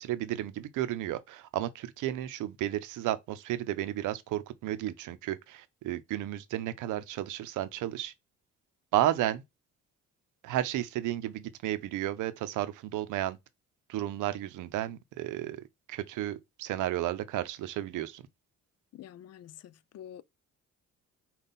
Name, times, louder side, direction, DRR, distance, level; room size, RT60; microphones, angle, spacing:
voice 1, 0.0-8.1 8.9-9.4 10.4-13.4 13.9-15.6 15.9-18.3, right 13 dB, 85° right, 0.6 m, -33 dB
voice 2, 18.9-20.2, left 11 dB, 55° left, 0.4 m, -47 dB
5.4 x 2.4 x 4.0 m
cardioid pair, 90°, 30 cm